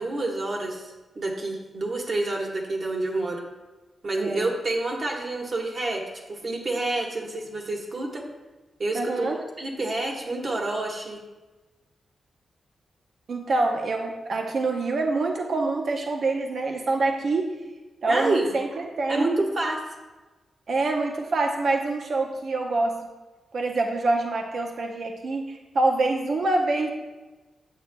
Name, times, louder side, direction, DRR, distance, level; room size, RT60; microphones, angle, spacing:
voice 1, 0.0-3.4 4.0-6.0 6.3-8.3 8.8-11.2 18.1-18.5 19.1-19.8, right 2 dB, 40° right, 0 dB, 1.3 m, -28 dB
voice 2, 8.9-9.4 13.3-17.5 18.0-19.3 20.7-22.9 23.5-26.9, right 2 dB, 55° right, 2 dB, 0.7 m, -25 dB
9.4 x 7.8 x 2.2 m, 1.2 s
wide cardioid pair, 135°, 0 cm